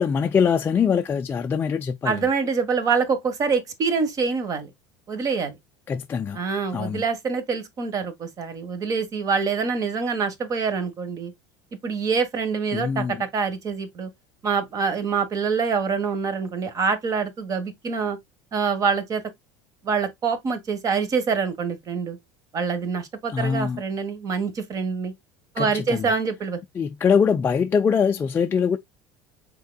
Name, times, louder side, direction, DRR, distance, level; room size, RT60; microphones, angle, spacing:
voice 1, 0.0-2.3 5.9-6.4 6.7-7.0 12.7-13.2 23.3-23.8 25.6-26.1 26.8-28.8, left 6 dB, 25° left, 0.4 m, -23 dB
voice 2, 2.0-4.7 5.1-5.6 6.3-11.3 11.8-14.1 14.4-18.2 18.5-19.2 19.8-22.2 22.5-25.1 25.5-26.6, right 5 dB, 40° right, 1.2 m, -25 dB
5.6 x 3.7 x 2.2 m
supercardioid pair, 110°, 9 cm